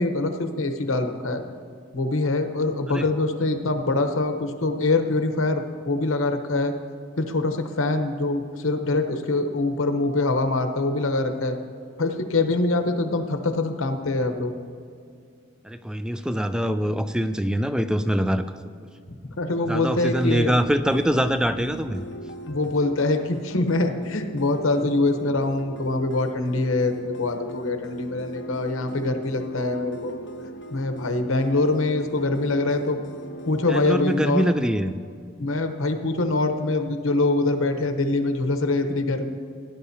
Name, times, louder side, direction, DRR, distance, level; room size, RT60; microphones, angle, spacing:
voice 1, 0.0-1.4 1.9-6.7 7.2-11.6 12.0-14.5 19.4-20.5 22.5-30.2 30.7-33.0 33.5-34.5 35.4-39.3, left 2 dB, 90° left, 6 dB, 1.0 m, -24 dB
voice 2, 15.6-18.6 19.7-22.0 33.7-35.0, equal, 5° right, 10 dB, 0.3 m, -24 dB
sound 1, 20.1-34.4, equal, 60° left, 0.6 m, -39 dB
17.5 x 11.0 x 2.8 m, 2.3 s
head